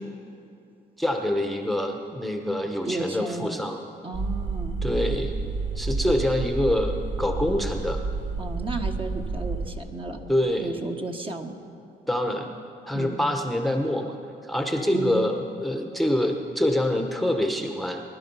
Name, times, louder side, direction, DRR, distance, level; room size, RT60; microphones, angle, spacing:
voice 1, 1.0-3.8 4.8-5.3 5.7-8.0 10.3-10.7 12.1-12.6 12.9-14.2 14.4-18.0, left 1 dB, ahead, 4 dB, 1.1 m, -25 dB
voice 2, 2.9-3.6 4.0-4.8 8.4-10.2 10.6-11.6 12.9-13.2 14.9-15.2, right 3 dB, 25° right, 3 dB, 1.3 m, -33 dB
sound 1, 4.1-9.7, right 3 dB, 70° right, 1.7 m, -30 dB
22.0 x 11.5 x 5.6 m, 2.6 s
cardioid pair, 90°, 20 cm